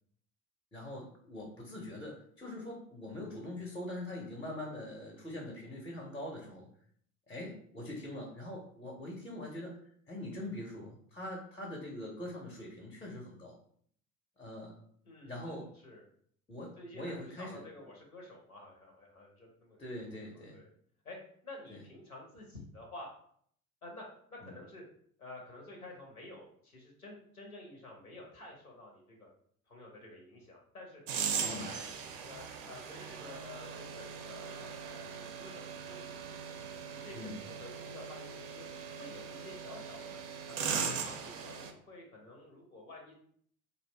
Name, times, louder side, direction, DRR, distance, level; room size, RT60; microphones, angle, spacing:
voice 1, 0.7-6.7 7.3-9.7 10.1-13.5 14.4-14.8 15.2-15.7 16.5-17.6 19.8-20.6 24.4-24.5 31.4-31.7 37.1-37.4, left 1 dB, 10° left, -1 dB, 0.5 m, -43 dB
voice 2, 15.0-16.0 16.8-19.8 20.1-20.7 21.0-21.2 21.4-23.1 23.8-24.8 25.2-29.3 29.7-31.0 31.4-31.8 32.3-36.2 36.6-38.7 38.9-40.2 40.5-43.2, left 2 dB, 90° left, 0 dB, 0.7 m, -50 dB
sound 1, 31.1-41.7, right 6 dB, 65° right, 0.5 m, -39 dB
2.5 x 2.0 x 3.2 m, 0.62 s
figure-of-eight pair, 55°, 42 cm